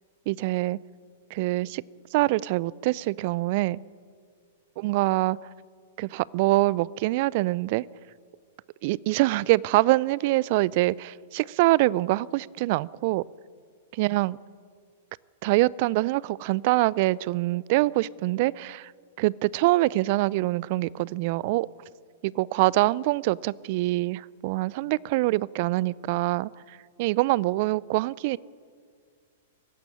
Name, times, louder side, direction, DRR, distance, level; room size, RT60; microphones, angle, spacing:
voice 1, 0.3-0.8 1.3-1.8 2.1-3.8 4.8-5.4 6.0-7.8 8.8-13.2 14.0-14.4 15.4-18.9 19.2-21.7 22.2-28.4, right 19 dB, 50° right, 24 dB, 0.4 m, -24 dB
19.0 x 15.0 x 9.9 m, 2.1 s
hypercardioid pair, 105°, 0 cm